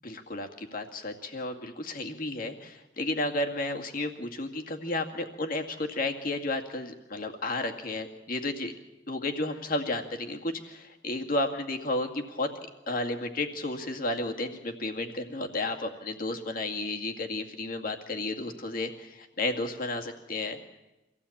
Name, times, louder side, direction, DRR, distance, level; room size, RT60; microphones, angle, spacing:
voice 1, 0.0-8.7 9.1-12.5 12.9-20.6, left 2 dB, 55° left, 4 dB, 2.2 m, -32 dB
24.5 x 16.0 x 8.6 m, 1.0 s
head